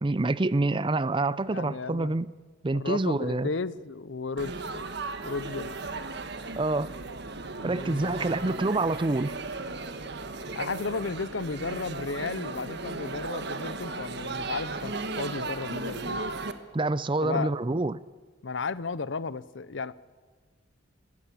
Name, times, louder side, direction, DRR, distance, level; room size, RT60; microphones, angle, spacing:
voice 1, 0.0-2.3 2.6-3.5 6.6-6.9 7.6-9.3 16.7-18.0, right 2 dB, 25° right, 18 dB, 0.5 m, -27 dB
voice 2, 1.5-2.1 2.7-4.5 5.2-5.8 7.6-8.4 10.6-16.2 17.2-17.5 18.4-19.9, left 4 dB, 70° left, 18 dB, 0.7 m, -34 dB
Laughter / Chatter / Crowd, 4.4-16.5, right 3 dB, 60° right, 1.5 m, -36 dB
20.0 x 16.0 x 8.5 m, 1.4 s
head